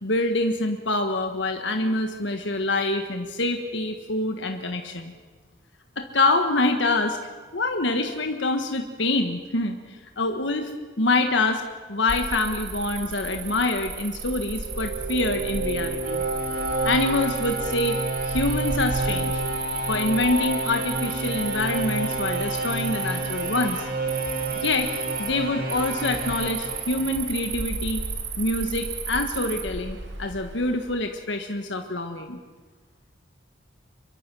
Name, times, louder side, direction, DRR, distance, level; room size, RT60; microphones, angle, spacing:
voice 1, 0.0-5.1 6.0-7.2 7.5-10.7 11.0-11.6 11.9-16.2 16.8-18.0 18.2-19.4 19.9-23.9 24.6-24.9 25.2-28.0 28.4-32.4, left 2 dB, 70° left, 5 dB, 1.5 m, -26 dB
Cricket, 12.1-31.0, right 5 dB, 75° right, 2.9 m, -34 dB
sound 1, 14.5-27.6, right 2 dB, 45° right, 2.8 m, -29 dB
25.5 x 23.0 x 6.2 m, 1.5 s
head